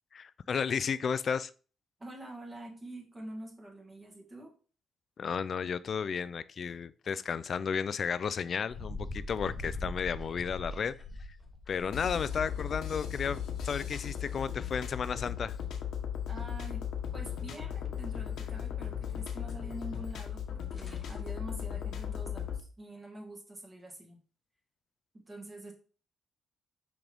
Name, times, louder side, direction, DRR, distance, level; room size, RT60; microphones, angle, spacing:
voice 1, 0.1-1.5 5.2-10.9 11.7-15.6, left 6 dB, 40° left, 0.3 m, -33 dB
voice 2, 2.0-4.5 16.3-16.9 17.1-24.2 25.1-25.7, right 1 dB, 20° right, 1.6 m, -46 dB
sound 1, 8.7-15.8 16.2-17.1 17.4-17.5 17.9-18.0 20.0-20.1 20.4-20.5 20.7-21.2, left 2 dB, 25° left, 1.0 m, -43 dB
sound 2, 11.9-22.6, left 9 dB, 70° left, 1.0 m, -37 dB
6.0 x 5.2 x 3.4 m
cardioid pair, 150°, 0 cm